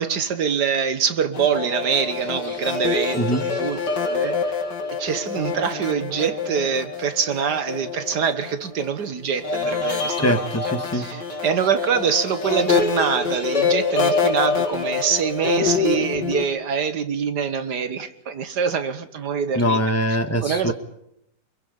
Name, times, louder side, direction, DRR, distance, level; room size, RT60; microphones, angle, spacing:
voice 1, 0.0-4.5 5.0-10.2 10.9-19.8 20.4-20.7, right 7 dB, 65° right, 10 dB, 1.7 m, -24 dB
sound 1, 1.3-8.9 9.4-16.4, left 4 dB, 70° left, 2.8 m, -25 dB
voice 2, 3.1-3.5 10.2-11.1 19.5-20.7, equal, 10° left, 7 dB, 1.2 m, -22 dB
24.5 x 22.5 x 5.3 m, 0.78 s
omnidirectional pair, 1.9 m